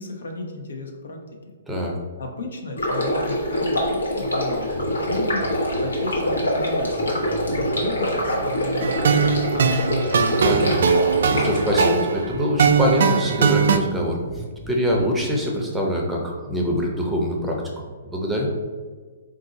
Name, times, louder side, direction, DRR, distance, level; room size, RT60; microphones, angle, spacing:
voice 1, 0.0-1.5 2.2-10.0, left 2 dB, 75° left, 2 dB, 0.7 m, -34 dB
Stream, 2.8-11.8, equal, 90° left, 1.1 m, -25 dB
sound 1, 4.7-5.9 6.2-6.4 6.9-9.7 10.1-11.2 11.6-11.7 12.2-15.1, right 2 dB, 45° left, 1.1 m, -37 dB
sound 2, 8.8-13.8, right 5 dB, 65° right, 0.3 m, -20 dB
voice 2, 10.4-10.8 11.3-14.2 14.7-17.6 18.1-18.5, equal, 5° right, -1 dB, 0.6 m, -24 dB
3.9 x 2.5 x 3.8 m, 1.5 s
hypercardioid pair, 130°, 0 cm